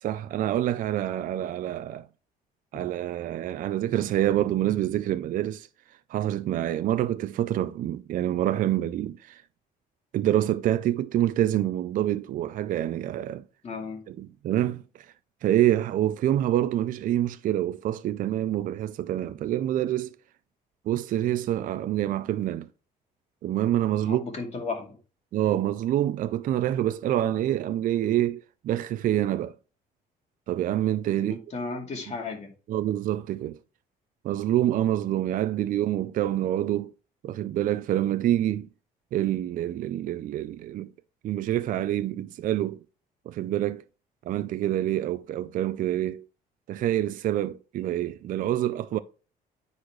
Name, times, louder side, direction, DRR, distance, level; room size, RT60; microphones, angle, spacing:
voice 1, 0.0-2.1 2.7-5.7 6.1-9.4 10.1-13.4 14.1-15.1 15.4-20.1 20.9-22.7 23.4-24.2 25.3-29.6 30.5-31.4 32.7-33.6 34.2-36.9 37.2-38.7 39.1-40.9 41.2-42.8 43.3-43.8 44.3-46.3 46.7-49.0, right 12 dB, 55° right, 0.4 m, -26 dB
voice 2, 13.6-14.0 24.0-25.0 31.2-32.5, left 4 dB, 40° left, 2.3 m, -34 dB
9.5 x 4.1 x 3.1 m
cardioid pair, 110°, 17 cm